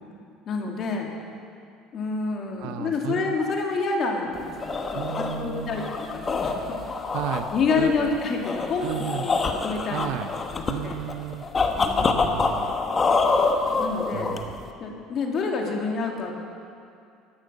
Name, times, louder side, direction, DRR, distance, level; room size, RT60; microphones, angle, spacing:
voice 1, 0.5-1.1 1.9-6.9 7.5-11.0 11.8-12.3 13.8-14.3 14.8-16.3, left 4 dB, 50° left, 1 dB, 2.2 m, -28 dB
voice 2, 2.6-3.4 4.9-5.9 7.1-7.5 7.8-8.2 8.8-9.2 9.9-10.3 10.7-11.5 12.0-12.7 14.1-14.5, right 12 dB, 70° right, 10 dB, 0.8 m, -33 dB
sound 1, 4.4-14.7, left 4 dB, 30° left, 1.3 m, -26 dB
13.0 x 12.0 x 6.6 m, 2.5 s
supercardioid pair, 85°, 0 cm